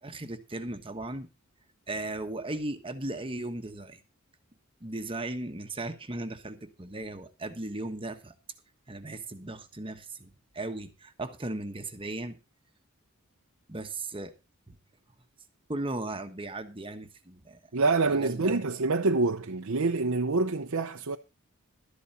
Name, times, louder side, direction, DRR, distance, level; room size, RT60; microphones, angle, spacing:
voice 1, 0.0-1.3 1.9-4.0 4.8-8.3 8.9-12.4 13.7-14.3 14.7-14.8 15.7-17.6 18.1-18.6, right 2 dB, 25° right, 1.2 m, -37 dB
voice 2, 17.7-21.2, right 3 dB, 75° right, 0.8 m, -26 dB
13.0 x 11.0 x 4.2 m
head